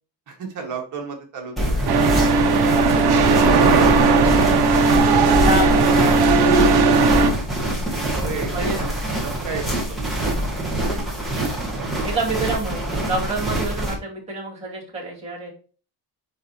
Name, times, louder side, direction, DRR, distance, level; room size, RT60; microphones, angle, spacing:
voice 1, 0.3-2.2 2.7-4.3 5.1-6.2 7.8-8.9 9.2-10.4, right 5 dB, 45° right, 1 dB, 1.8 m, -34 dB
sound 1, 1.6-13.9, right 1 dB, ahead, 2.0 m, -25 dB
sound 2, 1.9-7.3, right 4 dB, 65° right, 1.1 m, -16 dB
voice 2, 5.4-6.2 8.5-8.8 12.0-15.5, right 2 dB, 15° right, -6 dB, 2.5 m, -27 dB
9.9 x 3.4 x 2.9 m, 0.39 s
cardioid pair, 170°, 42 cm